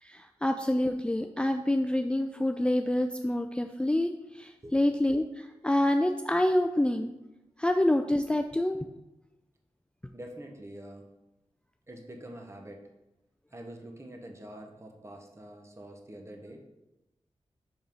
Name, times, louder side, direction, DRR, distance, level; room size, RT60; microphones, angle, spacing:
voice 1, 0.0-7.1 7.6-8.8, left 1 dB, 10° left, 5 dB, 0.4 m, -27 dB
voice 2, 10.1-11.1 11.9-12.9 13.5-16.7, right 1 dB, 25° right, 2 dB, 1.1 m, -45 dB
5.6 x 5.4 x 5.3 m, 0.95 s
wide cardioid pair, 75°, 11 cm